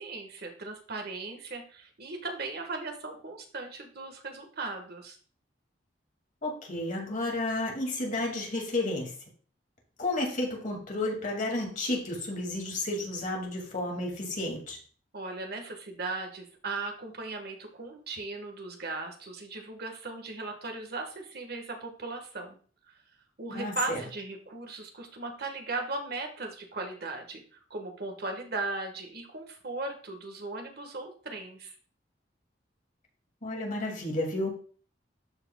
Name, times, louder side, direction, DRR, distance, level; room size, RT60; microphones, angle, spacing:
voice 1, 0.0-5.2 15.1-22.6 22.9-23.0 23.4-31.7, right 3 dB, 60° right, 3 dB, 1.4 m, -37 dB
voice 2, 6.4-9.1 10.0-14.8 23.5-24.0 33.4-34.5, left 2 dB, 45° left, 0 dB, 2.2 m, -32 dB
12.5 x 4.9 x 2.3 m, 0.43 s
head